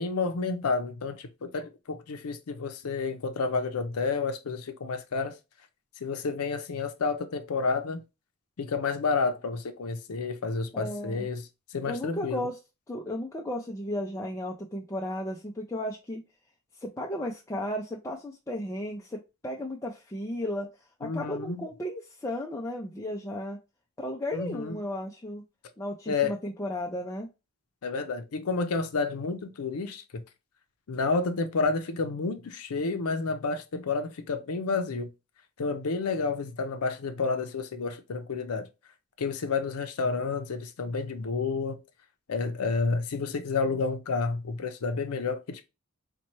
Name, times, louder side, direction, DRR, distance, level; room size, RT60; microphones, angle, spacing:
voice 1, 0.0-5.3 6.0-8.0 8.6-11.4 11.7-12.4 21.0-21.6 24.3-24.8 26.1-26.3 27.8-30.2 30.9-35.1 35.6-38.7 39.2-41.8 42.3-45.6, left 4 dB, 80° left, 0.5 m, -30 dB
voice 2, 10.7-11.3 11.8-12.6 12.9-16.2 16.8-20.7 21.0-23.6 24.0-25.4 25.8-27.3, left 1 dB, 15° left, 0.4 m, -34 dB
4.1 x 2.2 x 3.0 m
head